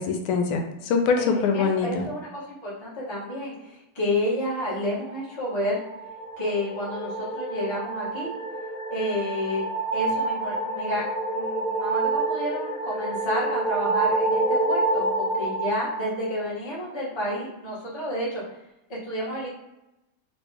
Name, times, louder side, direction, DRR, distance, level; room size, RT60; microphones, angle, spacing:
voice 1, 0.0-2.1, left 5 dB, 85° left, 4 dB, 1.4 m, -24 dB
voice 2, 1.1-5.8 6.4-8.3 8.9-9.6 9.9-11.0 11.3-18.4 19.0-19.5, left 1 dB, 15° left, -7 dB, 1.0 m, -30 dB
sound 1, 5.6-17.0, right 2 dB, 60° left, 1.3 m, -28 dB
3.1 x 3.1 x 3.3 m, 0.93 s
omnidirectional pair, 2.3 m